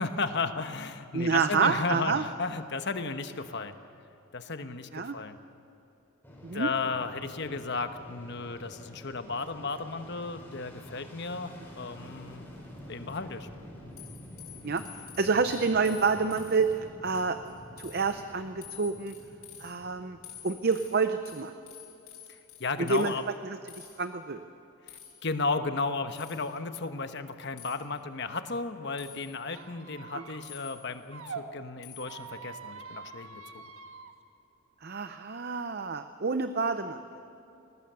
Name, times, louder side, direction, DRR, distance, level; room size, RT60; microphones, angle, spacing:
voice 1, 0.0-3.7 4.3-5.4 6.5-12.5 12.9-13.5 13.8-13.9 22.3-23.2 24.9-33.6, left 4 dB, 50° left, 9 dB, 1.1 m, -34 dB
voice 2, 1.1-2.2 4.9-5.2 6.4-6.7 14.6-14.8 15.2-19.1 19.6-20.2 20.4-21.5 22.8-23.1 23.4-24.4 30.1-30.2 34.8-37.0, right 4 dB, 45° right, 9 dB, 0.6 m, -28 dB
Fixed-wing aircraft airplane, 6.2-21.4, equal, 10° left, 5.4 m, -49 dB
sound 1, 14.0-16.8 17.1-17.5 17.8-18.2 18.6-19.7 20.2-23.1 23.7-23.9 24.9-25.3 26.1-26.5 27.6-27.8 29.0-29.4 30.4-31.0 31.8-32.2, left 11 dB, 80° left, 5.8 m, -49 dB
Squeak, 29.5-31.4 32.0-34.1, right 5 dB, 70° right, 1.3 m, -45 dB
21.0 x 19.0 x 6.8 m, 2.9 s
head